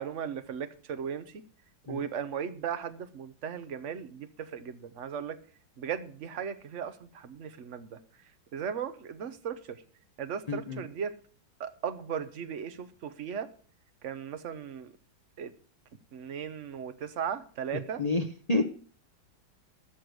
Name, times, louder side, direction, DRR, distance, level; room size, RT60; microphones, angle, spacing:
voice 1, 0.0-1.4 1.9-5.4 5.8-8.0 8.5-9.8 10.2-11.2 11.6-13.5 14.0-14.9 15.4-15.5 16.1-18.0, right 7 dB, 45° right, 10 dB, 1.1 m, -37 dB
voice 2, 10.5-10.8 18.0-18.7, left 2 dB, 35° left, 5 dB, 0.7 m, -29 dB
13.0 x 6.6 x 7.9 m, 0.43 s
omnidirectional pair, 2.1 m